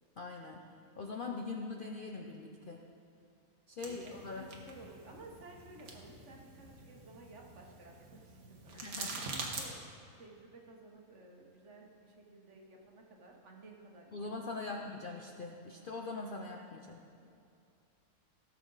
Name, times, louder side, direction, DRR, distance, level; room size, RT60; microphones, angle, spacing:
voice 1, 0.2-0.6 1.0-2.8 3.7-4.5 8.7-9.2 14.1-17.0, left 3 dB, 55° left, 1 dB, 0.6 m, -42 dB
sound 1, 3.8-9.6, right 3 dB, 70° right, 1.6 m, -45 dB
voice 2, 4.0-8.9 9.2-9.8 10.2-14.8 17.2-17.3, right 2 dB, 55° right, 1 dB, 1.4 m, -55 dB
16.5 x 7.2 x 3.9 m, 2.5 s
omnidirectional pair, 1.6 m